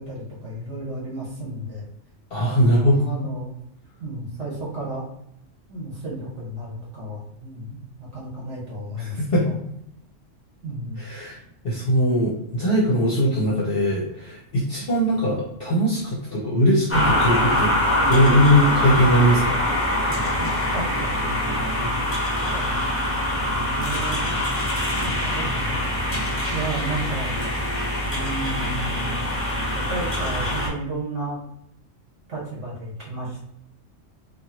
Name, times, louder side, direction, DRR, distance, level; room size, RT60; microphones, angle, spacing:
voice 1, 0.0-1.9 2.4-3.5 4.0-5.0 5.7-9.5 10.6-11.0 19.9-22.0 22.5-22.8 23.4-24.3 24.9-25.8 26.1-26.2 26.5-27.3 28.0-29.2 29.7-31.4 32.3-33.4, right 2 dB, 65° right, -5 dB, 1.3 m, -33 dB
voice 2, 2.3-3.0 9.0-9.5 11.0-11.4 11.6-17.8 18.1-19.6, equal, 55° left, -6 dB, 0.9 m, -20 dB
sound 1, 16.9-30.7, left 1 dB, 15° left, 0.5 m, -24 dB
3.0 x 2.4 x 2.9 m, 0.74 s
omnidirectional pair, 1.3 m